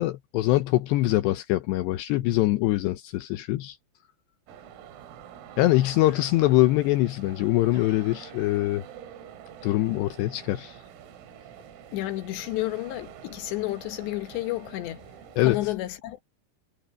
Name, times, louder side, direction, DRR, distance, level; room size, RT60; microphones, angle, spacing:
voice 1, 0.0-3.8 5.6-8.8 9.6-10.8 15.4-15.6, left 17 dB, 85° left, 2.4 m, -23 dB
sound 1, 4.5-15.6, right 9 dB, 85° right, 5.1 m, -46 dB
sound 2, 5.9-6.5 7.7-8.6, left 5 dB, 30° left, 4.9 m, -52 dB
voice 2, 11.9-15.0 15.4-16.2, left 17 dB, 70° left, 3.0 m, -31 dB
omnidirectional pair, 6.0 m